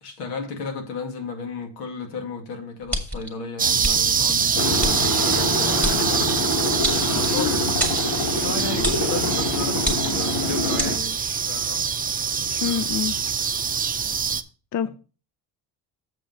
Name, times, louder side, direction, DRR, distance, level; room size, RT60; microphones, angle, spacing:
voice 1, 0.0-6.2 7.0-7.6 8.4-11.8 12.4-12.8, left 4 dB, 85° left, 2.3 m, -34 dB
sound 1, 2.9-3.3 3.8-4.0 4.8-4.9 5.8-6.0 6.8-7.4 7.8-8.1 8.8-9.1 9.8-10.3 10.8-10.9, equal, 5° left, 2.1 m, -26 dB
sound 2, 3.6-14.4, right 6 dB, 20° right, 0.6 m, -24 dB
sound 3, 4.5-11.0, left 2 dB, 70° left, 2.1 m, -26 dB
voice 2, 7.1-7.6 12.6-13.1 14.7-14.9, left 9 dB, 45° left, 0.6 m, -26 dB
7.5 x 5.3 x 5.3 m
cardioid pair, 95°, 40 cm